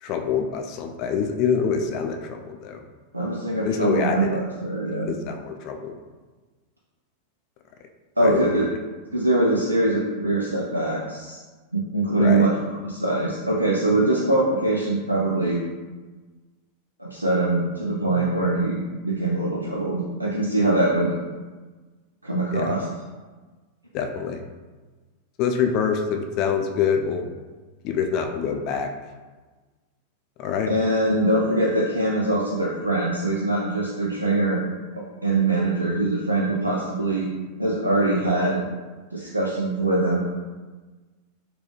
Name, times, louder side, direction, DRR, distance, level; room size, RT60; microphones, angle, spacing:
voice 1, 0.0-2.8 3.6-4.4 5.0-5.9 8.2-8.5 12.2-12.5 22.5-22.7 23.9-24.4 25.4-27.2 27.8-28.9 30.4-30.7, left 6 dB, 40° left, 4 dB, 0.3 m, -25 dB
voice 2, 3.1-5.1 8.2-8.6 9.1-11.4 11.7-12.5 12.8-15.6 17.0-21.1 22.2-22.9 30.7-34.6 35.2-37.3 37.6-38.6 39.1-40.2, right 2 dB, 85° right, -4 dB, 0.4 m, -23 dB
3.9 x 2.3 x 3.1 m, 1.3 s
figure-of-eight pair, 90°, 0 cm